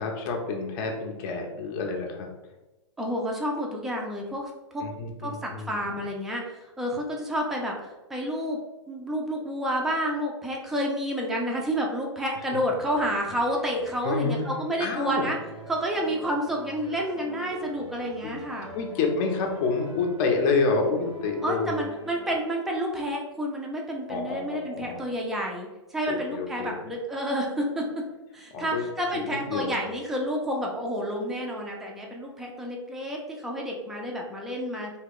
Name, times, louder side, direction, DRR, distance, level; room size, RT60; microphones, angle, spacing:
voice 1, 0.0-2.3 4.8-6.0 14.0-14.4 14.8-15.2 18.2-18.3 18.7-21.9 24.1-25.0 26.1-26.8 28.5-28.9 29.1-29.7, left 4 dB, 40° left, 2 dB, 0.6 m, -28 dB
voice 2, 3.0-4.8 5.2-8.6 8.9-15.4 15.7-18.7 21.4-28.0 28.3-34.9, equal, ahead, -1 dB, 0.4 m, -30 dB
sound 1, 12.8-22.4, right 2 dB, 85° right, 1.1 m, -45 dB
2.9 x 2.3 x 3.6 m, 1.0 s
hypercardioid pair, 120°, 16 cm